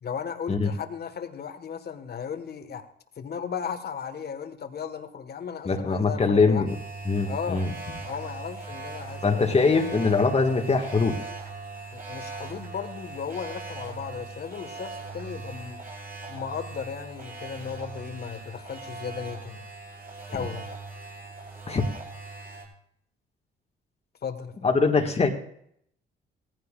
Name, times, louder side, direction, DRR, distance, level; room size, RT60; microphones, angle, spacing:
voice 1, 0.0-2.9 3.2-6.6 7.3-7.7 8.0-9.6 11.9-15.8 16.3-19.7 20.3-20.7 24.2-24.5, left 7 dB, 55° left, 8 dB, 1.5 m, -36 dB
voice 2, 5.6-6.7 7.0-7.7 9.2-11.2 20.4-20.5 21.7-21.9 24.6-25.3, left 4 dB, 30° left, 3 dB, 1.7 m, -22 dB
sound 1, 6.7-22.7, right 3 dB, 45° right, 6.3 m, -40 dB
18.0 x 15.0 x 2.5 m, 0.68 s
cardioid pair, 90°, 20 cm